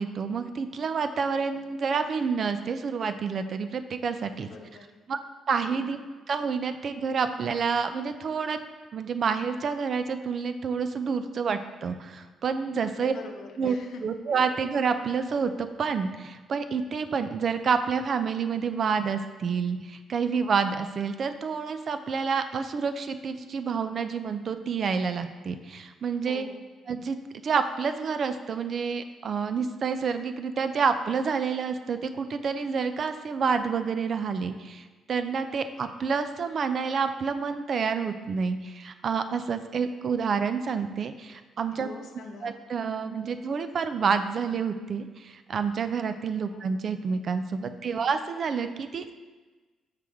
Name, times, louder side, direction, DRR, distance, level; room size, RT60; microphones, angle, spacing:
voice 1, 0.0-4.5 5.1-5.2 5.5-6.0 6.3-8.6 8.9-13.1 13.6-13.8 14.0-26.5 26.9-27.2 27.4-41.9 42.4-49.1, right 5 dB, 50° right, 9 dB, 0.4 m, -28 dB
voice 2, 4.2-4.9 5.6-5.9 12.8-14.0 14.3-14.4 26.3-26.6 41.7-42.5 46.5-46.6 47.9-48.1, left 4 dB, 70° left, 3 dB, 0.7 m, -45 dB
6.0 x 4.9 x 3.5 m, 1.3 s
cardioid pair, 90°, 0 cm